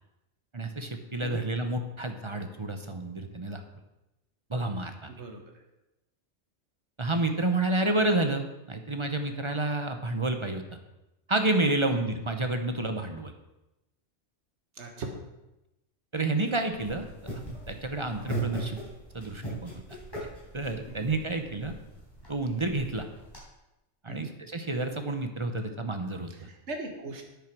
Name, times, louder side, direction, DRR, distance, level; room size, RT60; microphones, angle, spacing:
voice 1, 0.5-3.6 4.5-5.1 7.0-10.6 11.3-13.3 16.1-17.1 17.5-18.8 19.1-19.8 20.5-21.7 22.3-23.1 24.0-26.3, right 2 dB, 25° right, 6 dB, 0.9 m, -29 dB
voice 2, 5.1-5.4 11.8-12.0 14.7-15.2 20.9-21.1 24.1-24.3 26.3-27.2, right 2 dB, 65° right, 3 dB, 1.7 m, -39 dB
sound 1, 16.7-23.4, right 2 dB, 20° left, 4.3 m, -39 dB
9.4 x 8.7 x 6.1 m, 0.95 s
omnidirectional pair, 1.2 m